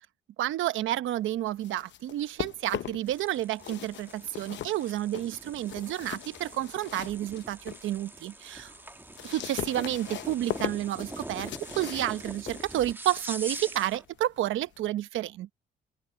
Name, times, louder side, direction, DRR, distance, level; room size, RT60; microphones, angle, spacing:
voice 1, 0.4-8.7 9.2-15.5, right 13 dB, 80° right, 0.9 m, -30 dB
sound 1, 1.4-3.2 3.5-7.9 8.3-14.9, left 12 dB, 65° left, 0.8 m, -40 dB
sound 2, 3.1-14.0, right 1 dB, 10° right, 1.9 m, -44 dB
open air
cardioid pair, 90°, 20 cm